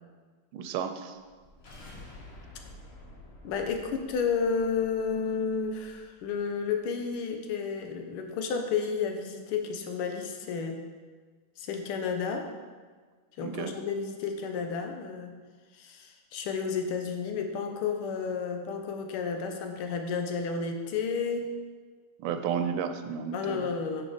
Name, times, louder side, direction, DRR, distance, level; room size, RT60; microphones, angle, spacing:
voice 1, 0.5-1.2 13.4-13.7 22.2-23.7, right 7 dB, 85° right, 8 dB, 1.5 m, -32 dB
sound 1, 1.2-6.3, left 1 dB, 45° left, 0.8 m, -50 dB
voice 2, 3.4-10.8 11.6-12.5 13.4-15.4 15.7-21.5 23.3-24.1, left 5 dB, 85° left, 4 dB, 1.7 m, -31 dB
6.2 x 5.5 x 5.0 m, 1.5 s
omnidirectional pair, 2.3 m